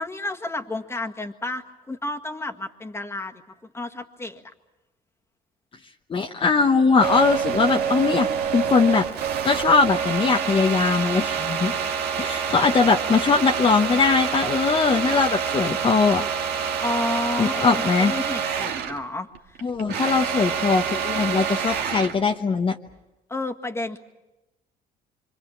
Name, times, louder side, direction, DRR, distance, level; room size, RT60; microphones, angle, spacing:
voice 1, 0.0-3.4 3.7-4.4 11.7-12.0 16.8-19.6 23.3-24.0, left 2 dB, 15° left, 4 dB, 1.8 m, -31 dB
voice 2, 6.1-9.0 9.4-11.7 12.2-16.2 17.4-18.1 19.6-22.8, left 4 dB, 30° left, 2 dB, 1.1 m, -21 dB
sound 1, 7.0-19.0 19.3-22.2, right 7 dB, 75° right, 2.1 m, -27 dB
26.5 x 25.5 x 7.3 m, 1.0 s
cardioid pair, 110°, 17 cm